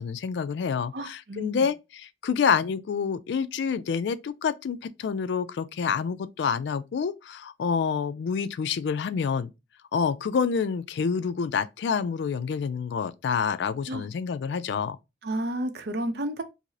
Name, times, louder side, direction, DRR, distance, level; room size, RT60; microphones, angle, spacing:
voice 1, 0.0-9.5 9.9-15.0, left 6 dB, 70° left, 0.3 m, -28 dB
voice 2, 0.9-1.7 13.9-14.0 15.2-16.4, right 1 dB, 60° right, 0.6 m, -31 dB
4.8 x 2.0 x 2.6 m
head